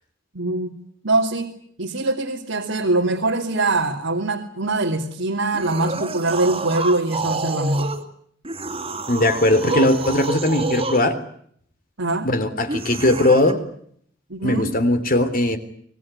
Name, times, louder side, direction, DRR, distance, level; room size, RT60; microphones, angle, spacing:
voice 1, 0.3-0.7 1.0-1.5 1.8-7.9 12.0-12.3 14.3-14.8, right 2 dB, 80° right, 0 dB, 2.8 m, -23 dB
sound 1, 5.5-8.0 8.4-11.1 12.7-13.5, right 3 dB, 30° right, 2.8 m, -28 dB
voice 2, 9.1-11.1 12.2-13.6 14.4-15.6, left 1 dB, 45° left, 9 dB, 3.3 m, -19 dB
26.0 x 20.5 x 9.8 m, 0.66 s
head